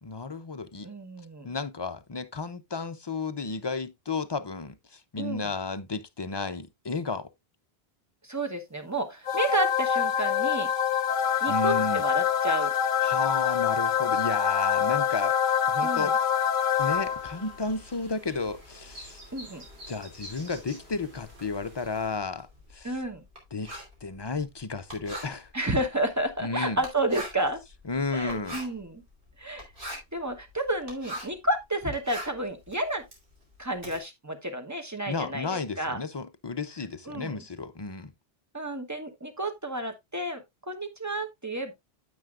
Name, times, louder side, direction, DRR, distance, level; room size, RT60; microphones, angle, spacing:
voice 1, 0.0-0.9 1.4-7.3 11.4-12.0 13.0-15.4 15.7-16.1 16.8-19.2 19.9-23.0 23.5-23.7 24.0-25.5 26.4-26.8 27.9-28.6 35.1-38.1, left 4 dB, 35° left, 0.4 m, -33 dB
voice 2, 0.8-1.5 5.2-5.5 8.2-10.7 11.4-12.7 15.8-16.1 19.3-19.6 22.8-23.2 25.5-27.6 28.1-29.0 29.4-33.0 33.6-36.0 37.1-37.4 38.5-41.7, right 1 dB, 15° right, 1.0 m, -31 dB
sound 1, 9.3-17.5, left 8 dB, 55° left, 0.8 m, -25 dB
sound 2, 16.8-22.1, equal, 85° right, 3.7 m, -48 dB
Writing, 21.2-31.4 31.8-34.0, right 1 dB, 60° right, 3.2 m, -42 dB
9.2 x 8.0 x 2.4 m
omnidirectional pair, 1.0 m